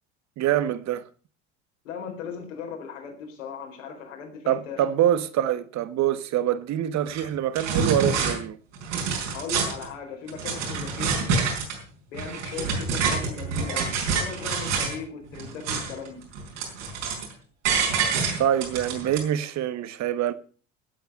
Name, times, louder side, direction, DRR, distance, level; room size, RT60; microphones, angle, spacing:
voice 1, 0.4-1.0 4.5-8.6 18.4-20.3, right 11 dB, 45° right, 1.2 m, -25 dB
voice 2, 1.8-4.8 9.3-11.3 12.1-16.2, left 6 dB, 75° left, 4.4 m, -38 dB
sound 1, 7.1-7.2 7.5-8.3 8.7-9.9 10.3-11.8 12.1-15.0 15.3-16.1 16.3-17.3 17.6-19.2, right 5 dB, 70° right, 4.8 m, -27 dB
16.5 x 8.1 x 5.5 m
hypercardioid pair, 70°, 38 cm